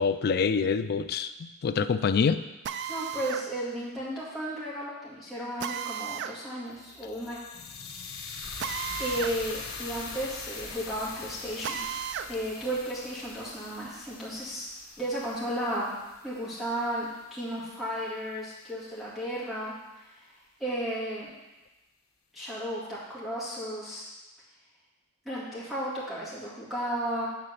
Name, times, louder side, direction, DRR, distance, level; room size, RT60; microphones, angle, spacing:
voice 1, 0.0-2.4, left 5 dB, 45° left, 12 dB, 0.3 m, -26 dB
Drill, 2.6-3.5 5.6-6.4 8.6-9.4 9.7-9.8 11.6-12.3, right 8 dB, 55° right, 0.3 m, -34 dB
voice 2, 2.9-7.4 8.6-11.9 12.3-14.7 15.0-15.9 16.2-19.7 20.0-20.1 20.6-21.3 22.3-24.1 25.3-27.3, right 1 dB, ahead, -9 dB, 2.1 m, -34 dB
sound 1, 6.7-16.9, left 4 dB, 80° left, 1.2 m, -42 dB
7.7 x 4.1 x 6.5 m, 1.1 s
head